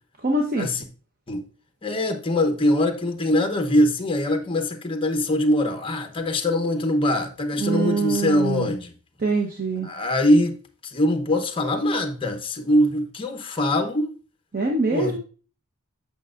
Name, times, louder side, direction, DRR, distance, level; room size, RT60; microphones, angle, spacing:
voice 1, 0.2-0.7 7.6-8.7 9.2-9.9 14.5-15.2, right 3 dB, 45° right, 0.9 m, -24 dB
voice 2, 1.8-8.9 9.8-14.1 14.9-15.2, left 1 dB, 25° left, 0.9 m, -22 dB
8.4 x 6.3 x 2.5 m
head